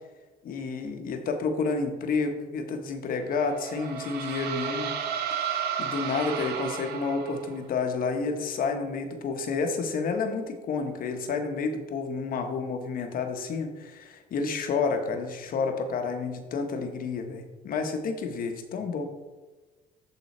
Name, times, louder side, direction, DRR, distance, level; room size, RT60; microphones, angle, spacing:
voice 1, 0.4-4.9 5.8-19.1, left 4 dB, 55° left, 6 dB, 1.0 m, -30 dB
sound 1, 3.3-7.6, right 8 dB, 75° right, 1.0 m, -33 dB
11.0 x 3.8 x 4.2 m, 1.3 s
cardioid pair, 110°, 17 cm